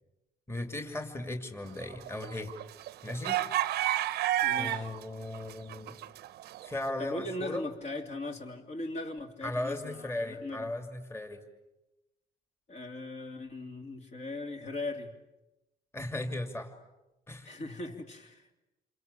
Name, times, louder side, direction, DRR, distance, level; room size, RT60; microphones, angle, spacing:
voice 1, 0.5-2.5 3.0-3.4 4.6-6.0 6.6-7.6 9.4-11.4 15.9-16.7 17.3-17.5, left 1 dB, 15° left, 5 dB, 2.7 m, -37 dB
sound 1, 1.8-5.0 5.3-6.7, right 13 dB, 70° right, 0.9 m, -30 dB
voice 2, 4.4-4.9 7.0-10.7 12.7-15.2 17.4-18.6, left 2 dB, 40° left, 4 dB, 2.9 m, -39 dB
28.0 x 24.5 x 8.5 m, 0.98 s
cardioid pair, 110°, 17 cm